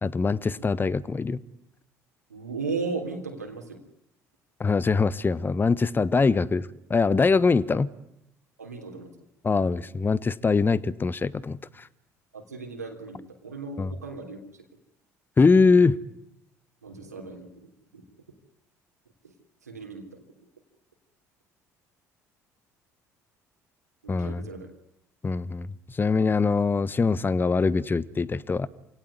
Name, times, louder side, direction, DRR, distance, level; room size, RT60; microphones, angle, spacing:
voice 1, 0.0-1.4 4.6-7.9 9.4-11.9 13.8-13.9 15.4-16.0 24.1-24.4 25.2-28.7, left 4 dB, 25° left, 20 dB, 1.2 m, -23 dB
voice 2, 2.3-3.8 8.6-9.1 12.3-14.6 16.8-18.0 19.2-19.3 19.6-20.2 24.0-24.7, right 4 dB, 85° right, 3 dB, 3.4 m, -36 dB
28.0 x 18.0 x 9.6 m, 0.81 s
figure-of-eight pair, 55°, 9 cm